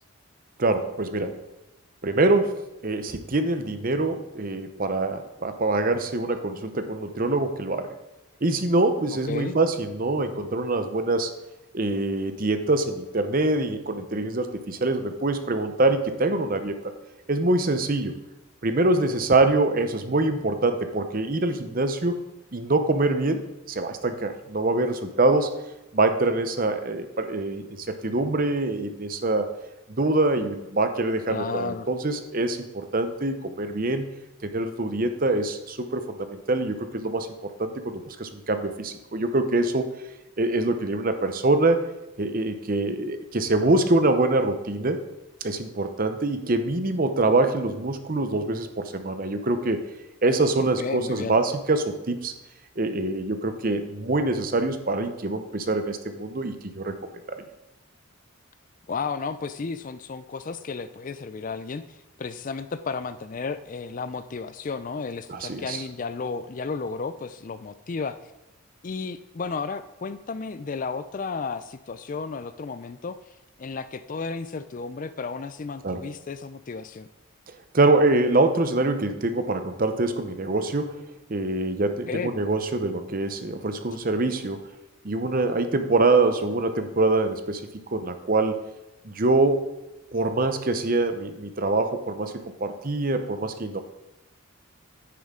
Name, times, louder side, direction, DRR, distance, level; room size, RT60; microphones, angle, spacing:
voice 1, 0.6-1.4 2.0-2.5 2.8-7.9 8.4-11.3 11.7-16.9 17.3-18.1 18.6-22.2 22.5-25.5 25.9-29.5 29.9-34.1 34.4-39.9 40.4-41.9 42.2-45.0 45.4-49.8 50.2-52.3 52.8-56.9 57.3-57.4 65.3-65.8 75.8-76.1 77.7-81.0 81.3-84.6 85.0-88.6 89.0-89.7 90.1-92.3 92.6-93.8, right 2 dB, 40° right, 8 dB, 0.8 m, -24 dB
voice 2, 31.3-31.9 50.6-51.4 58.9-61.8 62.2-68.2 68.8-73.2 73.6-77.1 82.1-82.3, left 4 dB, 35° left, 12 dB, 0.4 m, -33 dB
9.5 x 9.3 x 3.8 m, 0.98 s
head